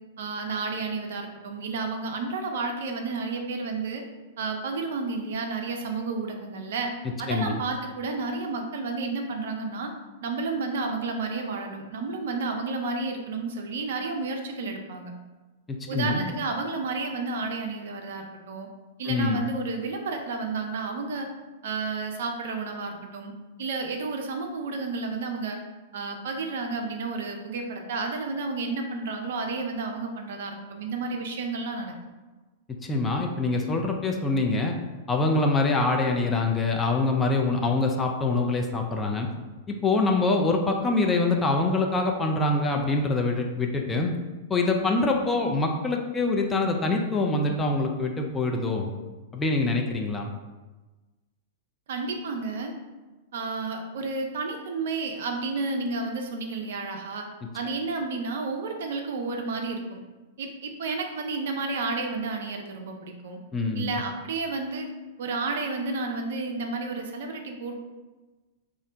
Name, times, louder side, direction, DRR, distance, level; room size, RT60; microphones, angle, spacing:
voice 1, 0.2-4.0 4.4-6.9 7.2-9.9 10.2-15.1 15.9-18.7 19.0-21.3 21.6-23.3 23.6-25.6 25.9-31.9 51.9-52.7 53.3-57.3 57.5-60.0 60.4-63.4 63.7-64.9 65.2-67.8, right 3 dB, 60° right, 3 dB, 0.4 m, -31 dB
voice 2, 15.9-16.3 19.1-19.4 32.8-34.8 35.1-39.3 39.7-44.1 44.5-48.9 49.3-50.3 63.5-64.0, left 3 dB, 15° left, 2 dB, 0.4 m, -25 dB
2.4 x 2.1 x 3.8 m, 1.2 s
figure-of-eight pair, 100°, 0 cm